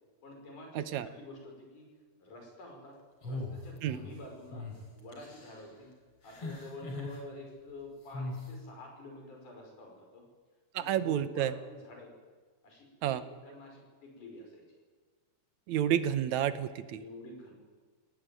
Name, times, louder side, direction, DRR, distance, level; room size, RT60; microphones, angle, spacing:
voice 1, 0.2-1.9 2.2-3.0 3.2-4.7 5.0-5.9 6.2-10.2 10.7-12.1 12.6-13.2 13.4-14.6 16.9-17.5, left 2 dB, 90° left, 2 dB, 7.0 m, -48 dB
voice 2, 0.7-1.1 3.8-4.0 10.7-11.5 13.0-13.2 15.7-17.0, right 10 dB, 75° right, 13 dB, 2.2 m, -30 dB
sound 1, 3.2-4.1 4.5-4.8 5.1-5.6 6.3-7.2 8.1-8.5, left 2 dB, 50° left, 4.9 m, -40 dB
25.5 x 17.5 x 9.2 m, 1.4 s
omnidirectional pair, 3.5 m